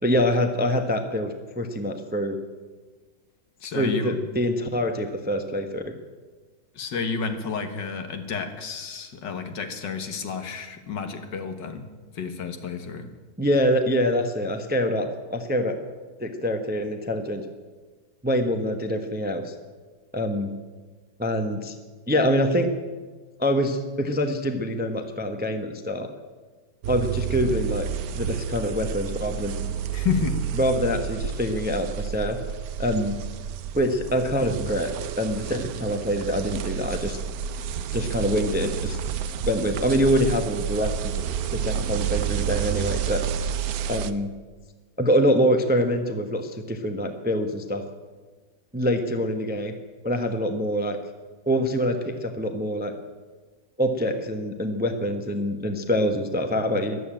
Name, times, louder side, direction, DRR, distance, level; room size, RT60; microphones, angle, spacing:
voice 1, 0.0-2.4 3.7-5.9 13.4-15.8 16.2-17.5 18.2-19.5 20.1-20.5 21.2-21.7 22.1-22.7 23.4-26.1 26.9-27.9 28.1-29.7 30.6-32.4 32.8-33.2 33.7-37.2 37.9-39.0 39.5-41.1 41.5-43.2 43.9-44.3 45.0-47.8 48.7-49.7 50.0-51.0 51.5-52.9 53.8-57.0, equal, 10° right, 6 dB, 0.7 m, -25 dB
voice 2, 3.6-4.1 6.8-11.9 12.1-13.1 29.9-30.4, left 6 dB, 70° left, 7 dB, 2.0 m, -30 dB
sound 1, 26.8-44.1, right 8 dB, 65° right, 1.0 m, -30 dB
13.5 x 11.5 x 8.8 m, 1.4 s
omnidirectional pair, 2.0 m